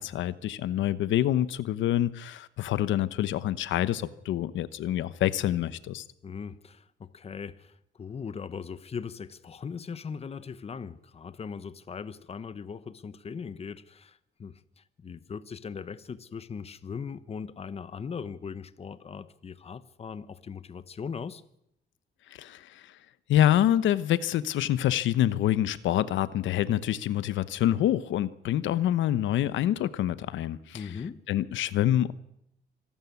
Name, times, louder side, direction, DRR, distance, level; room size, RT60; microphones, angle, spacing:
voice 1, 0.0-6.0 22.3-22.9 23.3-30.9 31.3-32.1, left 12 dB, 90° left, 1.0 m, -26 dB
voice 2, 6.2-21.4 30.7-31.2, left 6 dB, 30° left, 1.0 m, -39 dB
25.5 x 13.0 x 9.6 m
cardioid pair, 125°, 19 cm